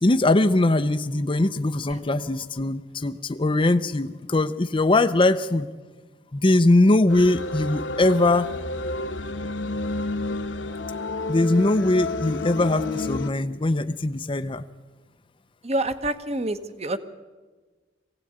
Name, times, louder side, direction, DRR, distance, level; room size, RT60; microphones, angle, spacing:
voice 1, 0.0-5.7 6.3-8.5 11.3-14.6, left 2 dB, 25° left, 8 dB, 0.6 m, -21 dB
sound 1, 7.1-13.3, left 3 dB, 70° left, 1.2 m, -30 dB
voice 2, 15.6-17.0, right 2 dB, 35° right, 11 dB, 1.2 m, -27 dB
23.0 x 17.0 x 8.7 m, 1.3 s
head